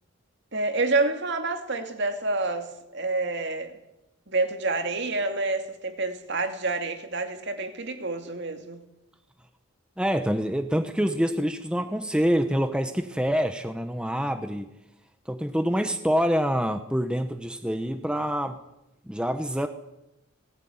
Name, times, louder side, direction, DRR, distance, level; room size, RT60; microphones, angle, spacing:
voice 1, 0.5-3.8 4.3-8.8, right 3 dB, 55° right, 2.5 m, -28 dB
voice 2, 10.0-14.7 15.3-18.6 19.1-19.7, equal, 5° right, 1.0 m, -26 dB
19.0 x 18.0 x 9.5 m
head